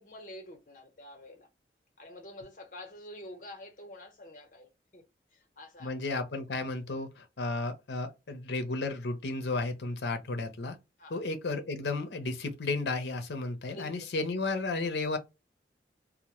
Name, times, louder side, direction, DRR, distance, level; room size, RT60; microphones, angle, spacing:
voice 1, 0.0-1.5 2.0-5.0 5.3-5.9 11.0-11.2 13.7-13.9, left 1 dB, 45° left, 0.8 m, -47 dB
voice 2, 5.8-10.8 11.1-15.2, left 3 dB, 80° left, 0.6 m, -33 dB
2.1 x 2.1 x 2.9 m
head